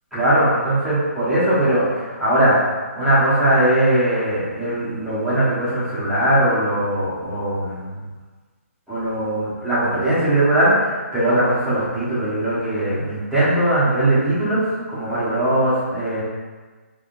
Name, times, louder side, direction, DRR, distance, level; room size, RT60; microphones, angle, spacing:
voice 1, 0.1-2.6 2.9-8.0 8.9-16.2, right 1 dB, ahead, -14 dB, 1.3 m, -20 dB
3.6 x 3.4 x 2.6 m, 1.4 s
figure-of-eight pair, 150°, 8 cm